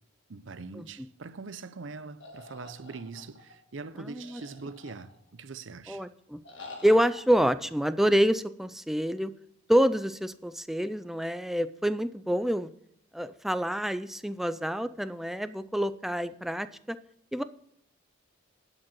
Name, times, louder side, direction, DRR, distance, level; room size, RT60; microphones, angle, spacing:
voice 1, 0.3-6.0, right 4 dB, 65° right, 0.7 m, -42 dB
sound 1, 2.2-3.5 4.2-5.4 6.4-7.2, left 2 dB, 60° left, 2.0 m, -47 dB
voice 2, 4.1-4.4 5.9-6.4 6.8-9.3 9.7-12.7 13.1-17.0 17.3-17.4, equal, ahead, 0.3 m, -27 dB
10.5 x 5.3 x 7.5 m
head